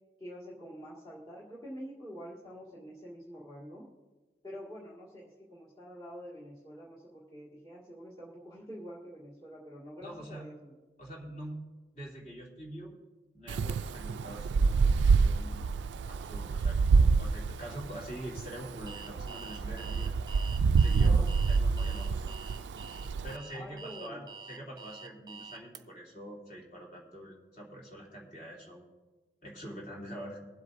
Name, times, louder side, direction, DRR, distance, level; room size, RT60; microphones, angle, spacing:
voice 1, 0.2-3.8 4.4-10.7 21.0-21.3 23.5-24.2, equal, 25° left, -6 dB, 1.9 m, -46 dB
voice 2, 10.0-10.4 11.0-11.6 11.9-13.0 13.3-15.7 16.1-20.1 20.7-22.4 23.2-28.9 29.4-30.4, right 1 dB, 40° left, -3 dB, 2.9 m, -45 dB
Wind, 13.5-23.4, right 5 dB, 85° right, 0.3 m, -27 dB
Alarm, 18.9-25.8, right 5 dB, 25° right, 0.5 m, -47 dB
24.0 x 8.2 x 2.6 m, 1.3 s
head